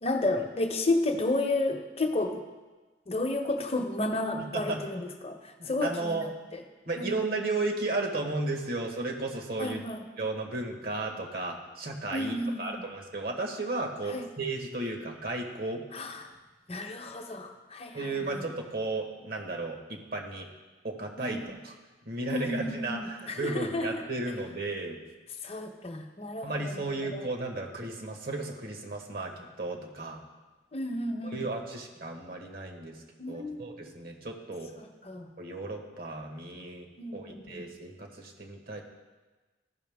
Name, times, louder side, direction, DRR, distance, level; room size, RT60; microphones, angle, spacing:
voice 1, 0.0-2.4 3.1-6.3 7.0-7.1 9.6-10.0 12.1-12.8 14.1-14.3 15.9-16.3 16.7-18.5 21.2-21.4 22.3-24.0 25.4-27.2 30.7-31.4 33.2-33.8 34.8-35.3 37.0-37.6, left 2 dB, 35° left, 4 dB, 0.9 m, -32 dB
voice 2, 5.6-6.3 6.8-9.8 10.2-15.8 17.9-20.5 20.8-21.7 22.0-25.0 26.4-30.2 31.2-33.0 33.3-34.7 35.4-36.9 37.1-38.8, right 2 dB, 60° right, 3 dB, 1.4 m, -34 dB
14.5 x 5.7 x 3.5 m, 1.2 s
head